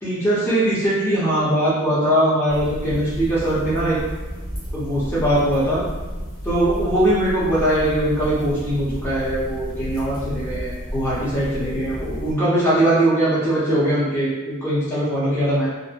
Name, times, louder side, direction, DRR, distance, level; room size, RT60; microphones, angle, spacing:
voice 1, 0.0-4.0 4.7-5.8 6.4-15.7, right 1 dB, 10° left, -10 dB, 0.7 m, -21 dB
sound 1, 2.5-12.3, equal, 40° left, 1.0 m, -32 dB
2.6 x 2.0 x 2.5 m, 1.1 s
head